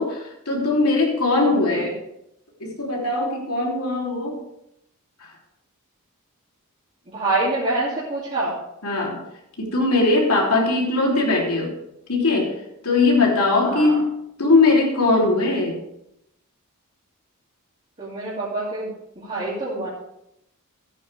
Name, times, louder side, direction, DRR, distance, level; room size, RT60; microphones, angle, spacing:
voice 1, 0.0-1.9 2.6-4.4 5.2-5.3 8.8-9.2 9.6-11.8 12.1-14.1 14.4-15.8, left 3 dB, 80° left, -2 dB, 3.1 m, -20 dB
voice 2, 7.1-8.6 13.6-14.0 18.0-18.9 19.3-19.9, right 2 dB, 30° right, -9 dB, 2.7 m, -26 dB
14.0 x 9.1 x 3.4 m, 0.81 s
head